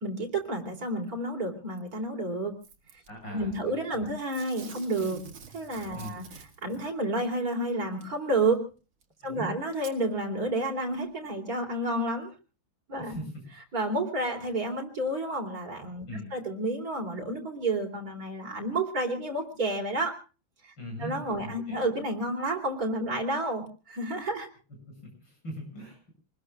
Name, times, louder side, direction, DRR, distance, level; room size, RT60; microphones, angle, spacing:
voice 1, 0.0-2.5 3.3-5.2 5.5-6.2 6.6-8.6 9.2-12.3 12.9-13.2 13.7-16.1 16.3-20.2 20.6-20.7 21.0-24.5, right 2 dB, 45° right, 2 dB, 4.3 m, -30 dB
Packing tape duct tape / Tearing, 2.6-3.1 4.3-6.9 8.0-8.1 9.0-9.1 9.7-10.0 10.7-10.8, right 6 dB, 75° right, 3.0 m, -47 dB
voice 2, 3.1-4.1 5.9-6.2 9.2-9.6 12.9-13.4 16.1-16.3 20.8-21.8 24.9-26.1, equal, 65° left, 3 dB, 8.5 m, -41 dB
28.0 x 20.5 x 2.4 m, 0.35 s
omnidirectional pair, 2.2 m